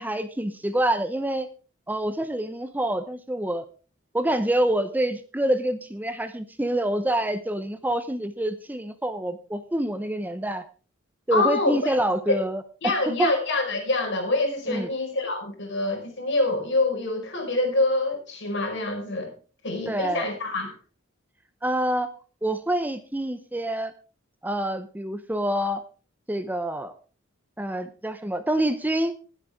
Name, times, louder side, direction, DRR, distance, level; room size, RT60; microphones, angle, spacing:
voice 1, 0.0-1.5 1.9-3.7 4.1-10.6 11.3-13.3 14.7-14.9 19.9-20.3 21.6-22.1 22.4-23.9 24.4-25.8 26.3-26.9 27.6-29.1, right 1 dB, 10° right, 10 dB, 0.7 m, -26 dB
voice 2, 11.3-12.0 12.3-12.4 12.8-19.3 19.6-20.8, left 2 dB, 60° left, 3 dB, 4.7 m, -26 dB
20.0 x 8.2 x 3.6 m, 0.37 s
head